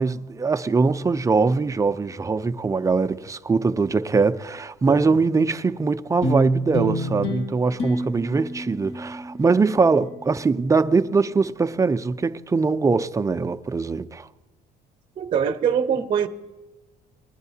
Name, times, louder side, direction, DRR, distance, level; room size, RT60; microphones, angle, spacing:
voice 1, 0.0-14.3, right 4 dB, 20° right, 0.4 m, -22 dB
voice 2, 4.9-5.2 15.2-16.3, right 8 dB, 45° right, 0.8 m, -23 dB
sound 1, 6.2-10.8, equal, 60° left, 2.3 m, -30 dB
20.0 x 9.8 x 2.8 m
cardioid pair, 110°, 17 cm